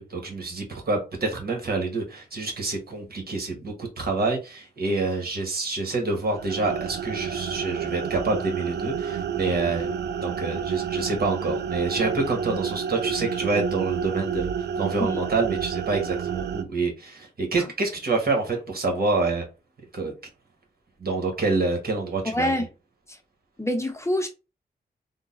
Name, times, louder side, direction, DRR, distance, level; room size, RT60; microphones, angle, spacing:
voice 1, 0.0-9.9 10.2-14.5 14.8-19.4 19.9-20.1 21.0-22.5, right 3 dB, 60° right, 1.6 m, -27 dB
sound 1, 6.2-16.6, right 7 dB, 85° right, 0.5 m, -30 dB
voice 2, 22.2-22.7 23.1-23.2 23.6-24.3, left 1 dB, 15° left, 0.9 m, -26 dB
3.7 x 2.3 x 4.0 m
cardioid pair, 60°, 17 cm